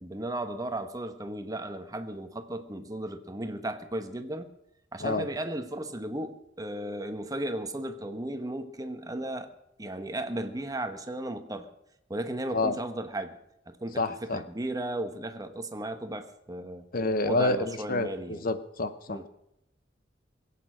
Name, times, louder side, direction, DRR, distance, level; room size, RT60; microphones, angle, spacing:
voice 1, 0.0-4.5 4.9-9.5 9.8-11.7 12.1-13.4 13.7-16.9 17.2-18.5 19.1-19.3, right 1 dB, 20° right, 8 dB, 1.1 m, -35 dB
voice 2, 14.0-14.4 16.9-19.2, left 2 dB, 50° left, 11 dB, 0.8 m, -28 dB
21.5 x 8.6 x 6.2 m, 0.81 s
head